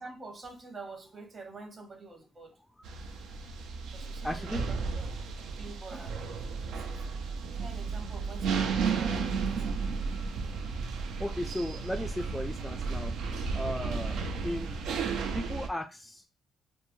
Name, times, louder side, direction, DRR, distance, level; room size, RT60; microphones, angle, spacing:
voice 1, 0.0-2.6 3.9-5.1 5.6-6.9 7.5-9.9, right 3 dB, 40° right, 1.0 m, -47 dB
sound 1, 2.8-15.7, right 5 dB, 80° right, 0.4 m, -33 dB
voice 2, 4.2-4.8 6.8-7.1 11.2-13.1 13.5-14.8 15.3-16.3, left 1 dB, 10° left, 0.3 m, -36 dB
3.0 x 2.1 x 2.6 m
cardioid pair, 90°, 0 cm